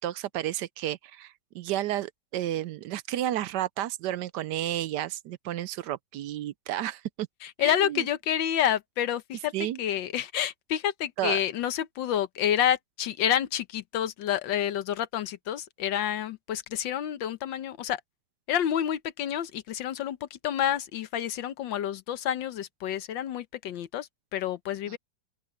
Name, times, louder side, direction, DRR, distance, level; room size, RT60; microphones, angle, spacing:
voice 1, 0.0-7.3 7.6-8.1 9.5-9.8 11.2-11.4 24.9-25.0, right 13 dB, 75° right, 1.1 m, -32 dB
voice 2, 7.4-18.0 18.5-25.0, left 10 dB, 90° left, 1.6 m, -29 dB
open air
omnidirectional pair, 2.0 m